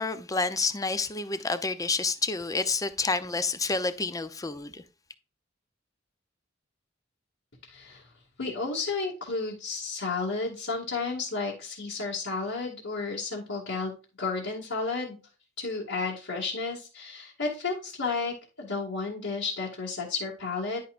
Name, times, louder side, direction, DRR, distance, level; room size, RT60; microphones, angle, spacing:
voice 1, 0.0-4.8, left 3 dB, 20° left, 0.6 m, -29 dB
voice 2, 7.7-8.0 8.4-13.9 14.2-15.2 15.6-20.8, left 4 dB, 75° left, 2.2 m, -32 dB
10.5 x 5.7 x 2.5 m
head